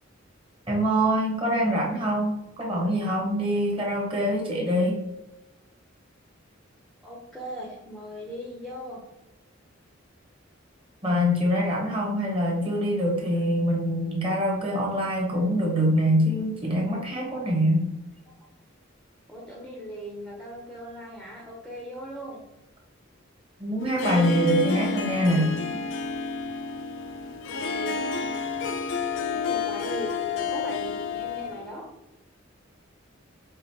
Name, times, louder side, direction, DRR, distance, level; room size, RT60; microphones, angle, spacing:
voice 1, 0.7-5.0 11.0-17.9 23.6-25.5, equal, 25° right, -2 dB, 1.1 m, -24 dB
voice 2, 7.0-9.0 19.3-22.4 25.9-26.5 27.4-28.4 29.3-31.8, equal, ahead, -3 dB, 0.7 m, -39 dB
Harp, 23.8-31.7, left 4 dB, 65° left, 0.4 m, -30 dB
5.1 x 2.5 x 2.8 m, 0.94 s
head